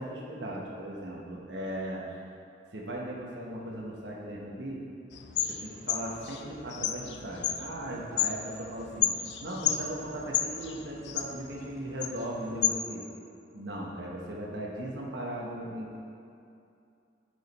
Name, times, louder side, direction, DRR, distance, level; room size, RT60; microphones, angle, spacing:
voice 1, 0.0-2.0 2.7-4.8 5.3-9.1 9.4-13.0 13.5-16.0, right 1 dB, 70° right, -3 dB, 1.0 m, -38 dB
sound 1, 5.1-12.7, left 9 dB, 65° left, 0.4 m, -33 dB
9.3 x 5.0 x 4.1 m, 2.6 s
head